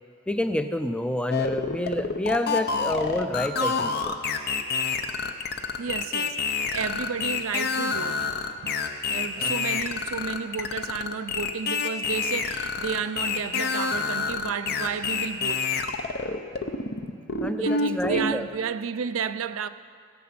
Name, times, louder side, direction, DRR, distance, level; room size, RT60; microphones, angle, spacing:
voice 1, 0.3-4.2 9.4-9.5 17.4-18.4, left 1 dB, 5° left, 0.5 m, -28 dB
sound 1, 1.3-18.3, left 4 dB, 50° left, 0.7 m, -27 dB
voice 2, 5.8-8.3 8.6-8.7 9.1-15.6 17.6-19.7, right 6 dB, 85° right, 0.5 m, -32 dB
17.0 x 8.4 x 6.0 m
head